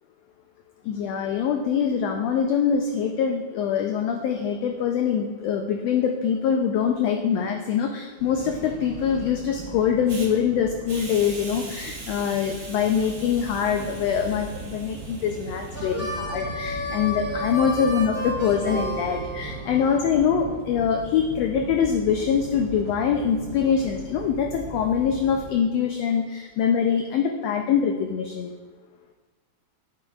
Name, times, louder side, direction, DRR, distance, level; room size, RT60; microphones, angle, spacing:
voice 1, 0.8-28.5, left 7 dB, 90° left, 4 dB, 1.4 m, -24 dB
sound 1, 8.2-25.5, right 3 dB, 90° right, 1.3 m, -39 dB
Hiss, 10.1-10.3 10.9-16.0, right 2 dB, 55° right, 0.8 m, -42 dB
Harmonica, 15.7-20.0, equal, 20° left, 1.7 m, -32 dB
9.0 x 8.2 x 2.3 m, 1.3 s
omnidirectional pair, 3.5 m